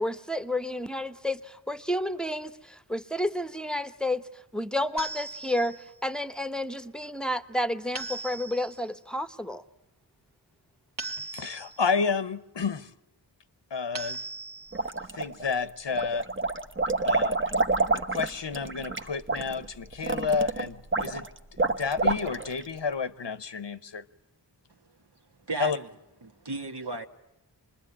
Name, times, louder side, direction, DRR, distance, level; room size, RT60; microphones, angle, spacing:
voice 1, 0.0-4.2 4.5-5.8 6.0-9.6, left 1 dB, ahead, 0.9 m, -30 dB
sound 1, 5.0-5.9 8.0-8.8 11.0-11.9 13.9-14.9, right 3 dB, 85° right, 2.1 m, -38 dB
voice 2, 11.3-12.9 13.7-14.2 15.1-16.3 17.0-17.5 17.9-21.3 21.7-24.0 25.6-25.8, left 5 dB, 75° left, 0.9 m, -30 dB
sound 2, 14.7-15.5 15.9-22.6, right 3 dB, 30° right, 1.0 m, -28 dB
voice 3, 25.5-25.9 26.2-27.1, right 3 dB, 70° right, 1.6 m, -35 dB
25.5 x 21.0 x 9.8 m
wide cardioid pair, 40°, 42 cm